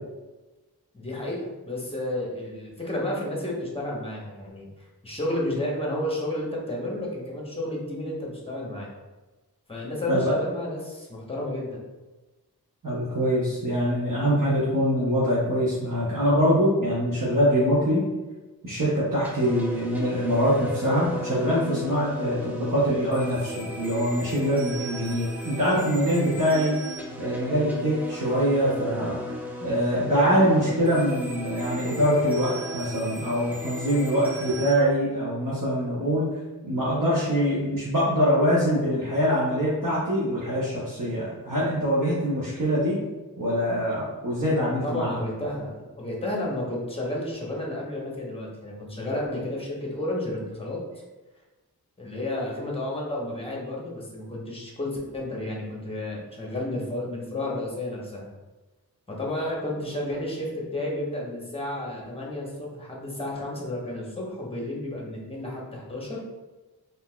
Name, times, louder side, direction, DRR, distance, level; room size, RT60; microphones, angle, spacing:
voice 1, 0.9-8.9 9.7-11.8 44.8-51.0 52.0-58.3 59.1-66.2, left 1 dB, 15° left, -3 dB, 0.9 m, -32 dB
voice 2, 12.8-18.0 18.6-26.8 27.2-29.2 29.6-36.3 36.6-43.0 43.4-45.2, equal, 55° right, -8 dB, 0.8 m, -24 dB
sound 1, 19.2-34.7, equal, 5° right, 0.5 m, -36 dB
3.9 x 2.7 x 2.3 m, 1.2 s
wide cardioid pair, 55°, 38 cm